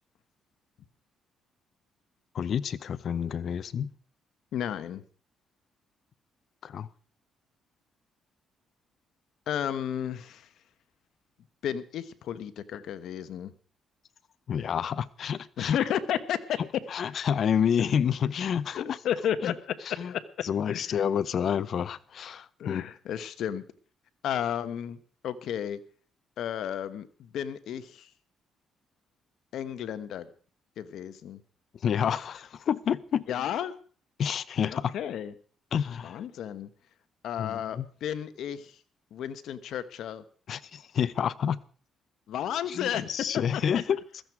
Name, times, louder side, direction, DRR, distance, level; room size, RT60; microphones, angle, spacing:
voice 1, 2.3-3.9 6.6-6.9 14.5-15.8 16.9-19.0 19.4-19.5 20.0-20.1 20.4-22.8 31.8-33.2 34.2-34.9 35.7-36.2 37.4-37.9 40.5-41.6 42.7-44.0, left 8 dB, 60° left, 0.7 m, -29 dB
voice 2, 4.5-5.0 9.5-10.5 11.6-13.5 15.6-16.6 18.7-19.7 20.1-20.2 20.7-21.0 22.6-23.6 24.2-25.8 26.4-28.1 29.5-30.3 30.8-31.4 33.3-33.7 34.9-35.3 36.0-36.7 37.2-38.8 39.1-40.2 42.3-43.6, left 9 dB, 75° left, 1.2 m, -33 dB
15.5 x 14.0 x 4.8 m
cardioid pair, 90°, 0 cm